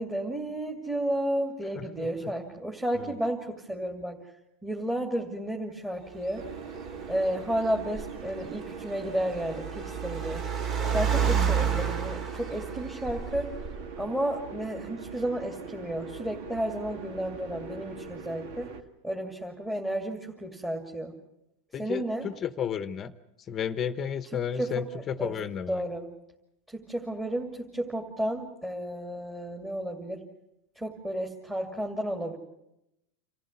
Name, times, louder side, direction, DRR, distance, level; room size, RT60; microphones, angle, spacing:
voice 1, 0.0-4.2 4.6-6.4 7.1-10.4 10.9-13.5 14.0-18.7 19.0-21.1 21.8-22.3 24.6-25.3 25.7-26.1 26.7-30.2 30.8-32.4, right 1 dB, 10° right, 2 dB, 2.5 m, -32 dB
voice 2, 1.7-2.3 11.2-11.6 21.7-23.1 23.5-25.8, left 8 dB, 30° left, 12 dB, 1.0 m, -33 dB
Car, 6.1-14.0, right 7 dB, 40° right, 2.4 m, -31 dB
sound 1, 6.4-18.8, right 5 dB, 70° right, 2.2 m, -42 dB
27.0 x 15.0 x 9.6 m, 0.87 s
supercardioid pair, 125°, 0 cm